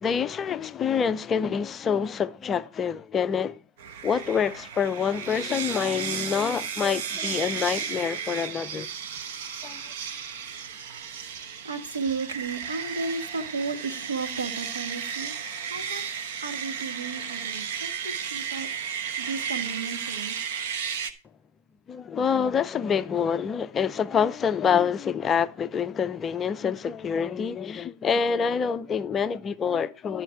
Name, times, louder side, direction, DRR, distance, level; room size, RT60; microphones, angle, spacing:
voice 1, 0.0-3.6 4.0-8.9 9.6-9.8 21.9-30.2, left 7 dB, 20° left, 0.4 m, -26 dB
sound 1, 3.8-21.1, right 7 dB, 55° right, 1.0 m, -34 dB
voice 2, 11.6-15.3 15.7-16.1 16.4-18.7 18.9-20.5, right 4 dB, 75° right, 1.8 m, -34 dB
12.0 x 5.6 x 4.5 m
figure-of-eight pair, 105°, 0 cm